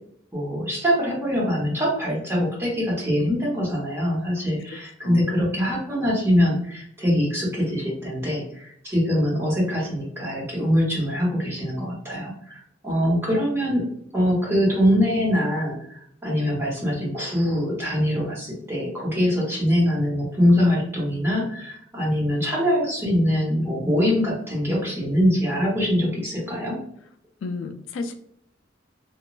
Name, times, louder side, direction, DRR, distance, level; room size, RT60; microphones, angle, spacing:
voice 1, 0.3-13.8 14.1-26.8, equal, 15° right, -4 dB, 0.9 m, -23 dB
voice 2, 27.4-28.1, left 3 dB, 75° left, 6 dB, 0.3 m, -32 dB
3.0 x 2.2 x 2.3 m, 0.70 s
head